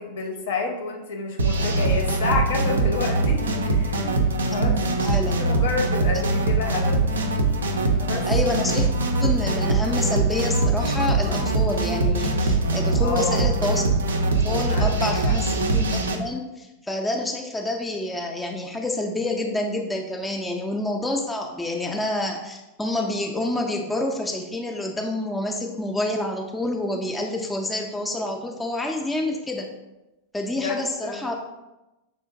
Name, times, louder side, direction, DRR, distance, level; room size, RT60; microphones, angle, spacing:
voice 1, 0.0-4.2 4.5-4.8 5.1-7.0 8.0-8.3 13.0-13.5 14.7-14.9 15.2-15.3 30.6-31.3, left 4 dB, 55° left, 2 dB, 0.6 m, -29 dB
sound 1, 1.4-16.2, right 2 dB, 70° right, 0.3 m, -22 dB
voice 2, 4.5-5.4 8.3-8.9 9.2-29.7 30.3-31.3, left 1 dB, 10° left, 1 dB, 0.3 m, -28 dB
5.5 x 2.5 x 2.4 m, 1.0 s
figure-of-eight pair, 90°, 0 cm